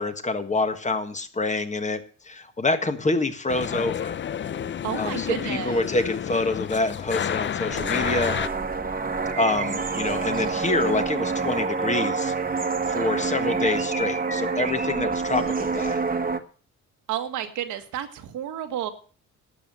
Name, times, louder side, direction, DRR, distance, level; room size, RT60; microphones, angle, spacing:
voice 1, 0.0-4.2 5.0-8.3 9.4-12.3 12.9-16.0, left 2 dB, 25° left, 8 dB, 1.5 m, -27 dB
sound 1, 3.5-8.5, left 9 dB, 40° left, 0.6 m, -30 dB
voice 2, 4.8-5.8 17.1-18.9, right 10 dB, 80° right, 7 dB, 1.7 m, -31 dB
sound 2, 7.7-16.4, right 4 dB, 30° right, 1.4 m, -27 dB
12.0 x 7.1 x 7.8 m, 0.41 s
cardioid pair, 90°, 30 cm